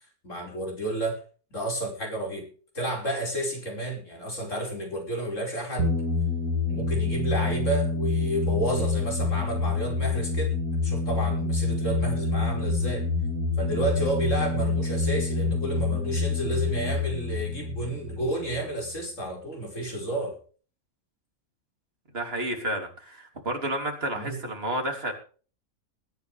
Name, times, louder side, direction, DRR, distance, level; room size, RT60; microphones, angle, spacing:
voice 1, 0.2-1.2 1.5-2.5 2.7-5.9 6.7-10.5 10.8-13.0 13.6-20.4 24.1-24.4, right 1 dB, 55° left, 0 dB, 5.6 m, -31 dB
sound 1, 5.8-19.0, left 3 dB, 65° right, 5.1 m, -27 dB
voice 2, 22.1-25.1, right 1 dB, 40° right, 3 dB, 3.4 m, -31 dB
21.0 x 11.0 x 3.4 m, 0.40 s
omnidirectional pair, 1.5 m